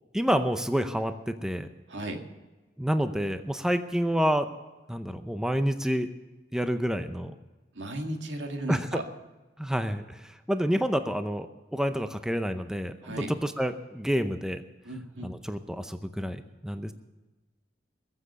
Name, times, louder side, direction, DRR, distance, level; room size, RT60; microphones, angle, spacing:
voice 1, 0.1-1.7 2.8-4.5 4.9-6.1 6.5-7.3 8.7-9.0 9.6-14.6 15.2-16.9, equal, 5° right, 8 dB, 0.6 m, -28 dB
voice 2, 1.9-2.2 7.7-9.0 13.0-13.3 14.8-15.3, right 1 dB, 85° right, 4 dB, 2.1 m, -35 dB
21.5 x 7.6 x 6.8 m, 1.2 s
head